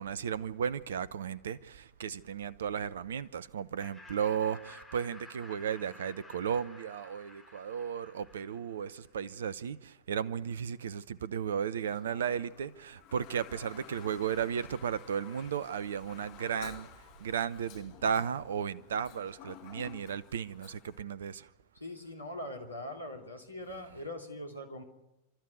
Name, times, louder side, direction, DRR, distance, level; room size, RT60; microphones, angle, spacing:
voice 1, 0.0-16.9 17.2-21.5, right 8 dB, 65° right, 0.8 m, -35 dB
Laughter, 3.8-9.1, left 2 dB, ahead, 3.9 m, -53 dB
Toilet flush, 11.9-21.0, left 10 dB, 45° left, 2.3 m, -53 dB
voice 2, 21.8-24.8, left 1 dB, 85° left, 3.1 m, -42 dB
29.5 x 13.0 x 9.4 m
figure-of-eight pair, 90°, 0 cm